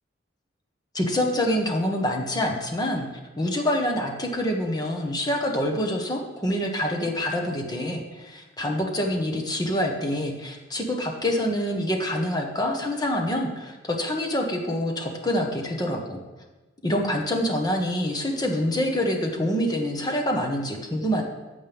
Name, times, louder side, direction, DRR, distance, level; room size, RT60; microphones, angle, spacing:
voice 1, 0.9-3.1 3.4-16.2 16.8-21.2, left 1 dB, 20° left, 2 dB, 1.4 m, -26 dB
14.5 x 8.7 x 3.6 m, 1.2 s
head